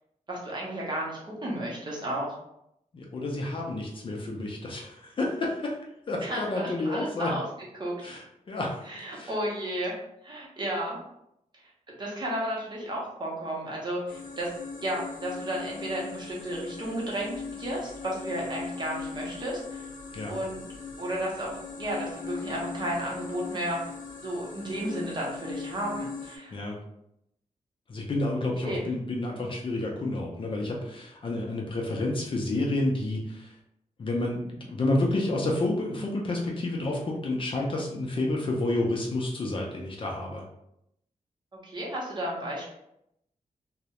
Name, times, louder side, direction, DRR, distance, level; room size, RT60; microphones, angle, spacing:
voice 1, 0.3-2.3 6.2-7.4 7.7-7.9 8.9-9.9 10.2-11.0 11.6-11.7 12.0-14.5 14.8-19.8 20.3-20.7 21.0-23.8 24.2-26.6 28.6-28.8 41.6-42.7, right 1 dB, 35° right, -4 dB, 0.7 m, -33 dB
voice 2, 2.9-5.7 6.1-7.3 8.0-8.8 9.1-9.3 20.1-20.3 26.5-26.8 27.9-33.5 34.0-40.4, left 2 dB, 40° left, -1 dB, 0.4 m, -30 dB
sound 1, 14.1-26.4, left 4 dB, 85° left, 0.5 m, -40 dB
2.3 x 2.0 x 2.8 m, 0.78 s
wide cardioid pair, 175°, 14 cm